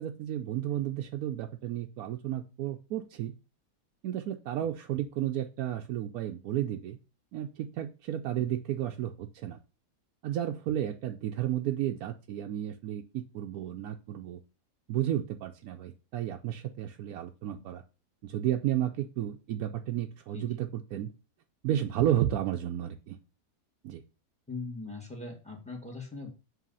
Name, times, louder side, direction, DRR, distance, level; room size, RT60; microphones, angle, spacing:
voice 1, 0.0-3.3 4.0-7.0 7.3-9.6 10.2-14.4 14.9-17.8 18.2-21.1 21.6-23.2 23.8-24.0, right 12 dB, 85° right, 4 dB, 1.1 m, -32 dB
voice 2, 24.5-26.3, left 3 dB, 5° left, 1 dB, 1.8 m, -40 dB
7.6 x 3.2 x 5.4 m, 0.31 s
omnidirectional pair, 1.5 m